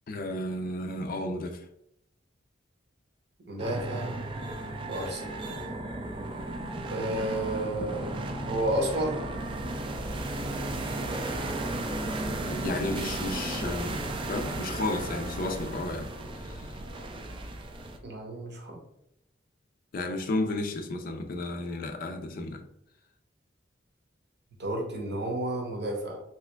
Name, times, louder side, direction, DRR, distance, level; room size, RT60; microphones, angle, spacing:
voice 1, 0.1-1.7 12.4-16.7 19.9-22.7, left 2 dB, 50° left, 0.4 m, -33 dB
voice 2, 3.5-4.2 4.9-5.4 6.9-8.1 8.5-9.2 18.0-18.8 24.6-26.2, right 1 dB, 60° right, 0.8 m, -31 dB
sound 1, 3.6-18.0, right 1 dB, 25° right, 0.3 m, -34 dB
3.3 x 2.8 x 2.2 m
head